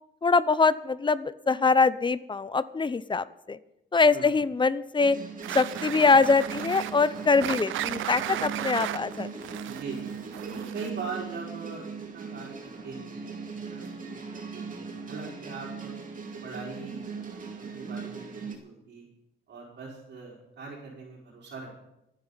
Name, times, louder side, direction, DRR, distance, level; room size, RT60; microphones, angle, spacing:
voice 1, 0.2-3.6 3.9-5.2 5.5-9.3, left 4 dB, 25° left, 16 dB, 0.7 m, -23 dB
sound 1, 5.0-18.6, right 5 dB, 40° right, 2.4 m, -39 dB
sound 2, 5.4-11.1, right 13 dB, 80° right, 0.6 m, -35 dB
voice 2, 9.6-10.1 10.4-15.9 16.3-19.1 19.5-21.9, right 4 dB, 60° right, -6 dB, 4.9 m, -41 dB
26.5 x 9.8 x 4.1 m, 0.87 s
cardioid pair, 90°, 20 cm